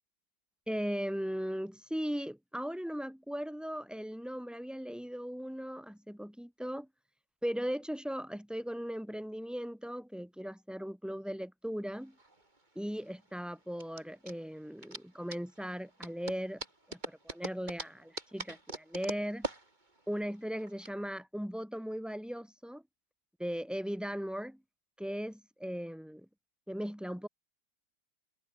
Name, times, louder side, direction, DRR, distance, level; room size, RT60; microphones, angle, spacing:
voice 1, 0.7-6.9 7.4-12.2 12.8-16.6 16.9-19.5 20.1-22.8 23.4-24.6 25.0-26.3 26.7-27.3, equal, ahead, 5.4 m, -38 dB
sound 1, 12.0-20.9, right 2 dB, 20° right, 3.3 m, -44 dB
omnidirectional pair, 2.3 m